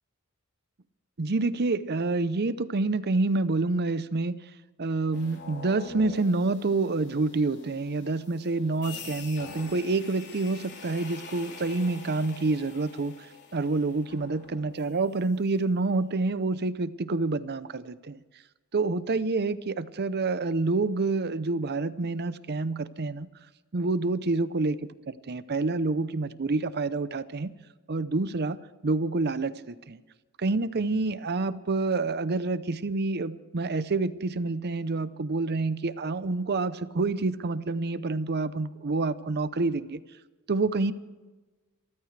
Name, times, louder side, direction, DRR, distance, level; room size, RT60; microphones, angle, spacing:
voice 1, 1.2-4.4 4.8-18.2 18.7-23.3 23.7-24.8 25.1-27.5 27.9-28.6 28.8-30.0 30.4-40.0 40.5-40.9, right 3 dB, 50° right, 15 dB, 0.7 m, -28 dB
sound 1, 5.1-15.2, left 4 dB, 50° left, 3.4 m, -45 dB
27.5 x 14.5 x 3.3 m, 1.2 s
head